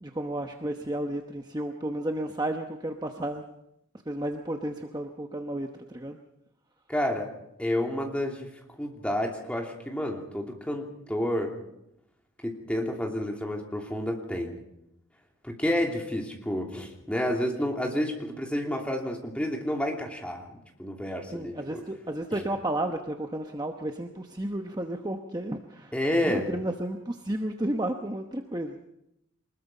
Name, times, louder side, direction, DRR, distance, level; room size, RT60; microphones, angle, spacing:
voice 1, 0.0-3.4 4.1-6.2 21.3-25.9 26.2-28.8, right 1 dB, 20° right, 4 dB, 1.0 m, -32 dB
voice 2, 6.9-7.3 7.6-8.5 8.8-11.6 12.4-14.6 15.4-20.5 20.8-21.8 25.9-26.5, left 1 dB, 5° left, 1 dB, 2.9 m, -30 dB
24.0 x 20.5 x 5.5 m, 0.83 s
head